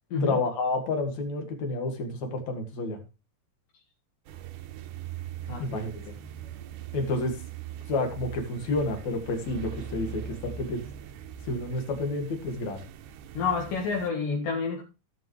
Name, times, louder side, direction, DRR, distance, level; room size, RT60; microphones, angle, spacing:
voice 1, 0.2-3.0 5.6-5.9 6.9-7.4 7.9-10.8 11.4-12.8, left 2 dB, 55° left, 4 dB, 3.2 m, -30 dB
sound 1, 4.3-14.1, right 9 dB, 75° right, 2.2 m, -41 dB
voice 2, 5.5-5.8 13.4-14.8, left 5 dB, 75° left, -1 dB, 3.6 m, -29 dB
16.0 x 7.5 x 3.2 m, 0.29 s
omnidirectional pair, 4.0 m